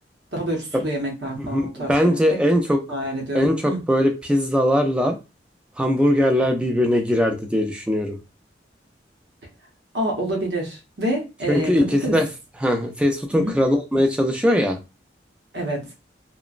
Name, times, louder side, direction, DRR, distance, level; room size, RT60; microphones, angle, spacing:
voice 1, 0.3-2.2 2.9-3.8 9.9-12.2 13.3-13.5 15.5-15.9, right 1 dB, 70° right, 0 dB, 0.8 m, -27 dB
voice 2, 1.5-2.8 3.3-5.2 5.8-8.2 11.5-12.3 12.6-14.8, equal, 5° right, 3 dB, 0.4 m, -20 dB
3.0 x 2.0 x 2.4 m, 0.27 s
head